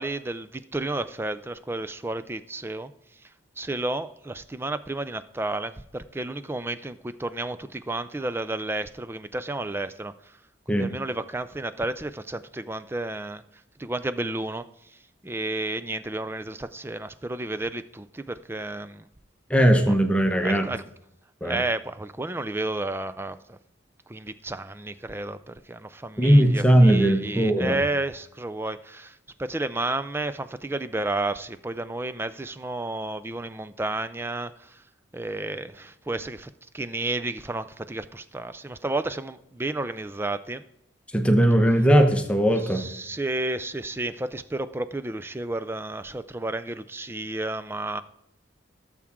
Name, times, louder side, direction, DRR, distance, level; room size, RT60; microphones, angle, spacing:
voice 1, 0.0-2.9 3.6-10.1 10.7-13.4 13.8-14.7 15.2-19.1 19.9-20.0 20.4-20.8 21.4-23.6 24.1-34.8 35.1-40.6 42.6-48.0, right 2 dB, 10° right, 12 dB, 0.4 m, -31 dB
voice 2, 19.5-20.7 21.4-21.6 26.2-27.8 41.1-42.9, right 1 dB, 5° left, 5 dB, 0.9 m, -19 dB
17.0 x 7.2 x 3.6 m, 0.82 s
head